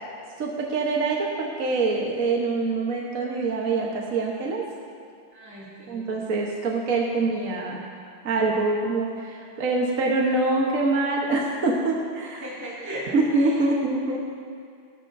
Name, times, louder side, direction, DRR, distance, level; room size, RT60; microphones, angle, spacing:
voice 1, 0.4-4.6 5.9-7.9 8.2-12.5 13.1-14.2, right 3 dB, 50° right, -1 dB, 1.2 m, -25 dB
voice 2, 5.3-6.2 12.4-13.1, right 1 dB, 10° right, -8 dB, 2.2 m, -37 dB
17.5 x 13.0 x 2.6 m, 2.2 s
omnidirectional pair, 2.4 m